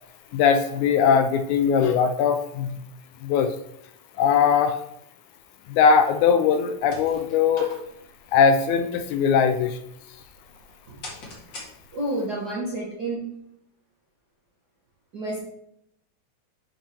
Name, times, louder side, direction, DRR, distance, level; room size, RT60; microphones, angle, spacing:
voice 1, 0.3-2.8 3.2-3.5 4.2-4.8 5.7-7.7 8.3-9.8, left 6 dB, 80° left, 8 dB, 1.9 m, -20 dB
sound 1, 6.6-12.3, left 2 dB, 40° left, 2.2 m, -45 dB
voice 2, 11.9-13.2 15.1-15.4, right 1 dB, 50° right, -5 dB, 1.2 m, -29 dB
10.0 x 5.3 x 3.4 m, 0.76 s
omnidirectional pair, 3.6 m